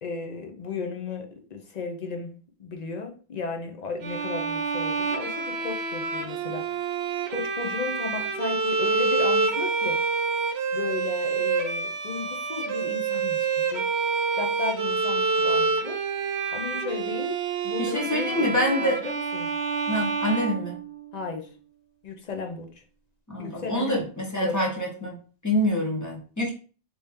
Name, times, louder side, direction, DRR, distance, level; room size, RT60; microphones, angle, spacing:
voice 1, 0.0-7.0 7.3-10.0 10.7-16.0 16.5-18.5 18.8-19.5 21.1-21.5 22.0-22.8 23.4-24.1 24.3-24.6, left 4 dB, 50° left, 4 dB, 0.6 m, -35 dB
Bowed string instrument, 4.0-21.2, right 4 dB, 80° right, 0.9 m, -27 dB
voice 2, 17.8-19.0 19.9-20.8 23.3-25.2 25.4-26.5, equal, 20° left, -1 dB, 0.8 m, -26 dB
3.1 x 2.7 x 3.4 m, 0.39 s
omnidirectional pair, 1.1 m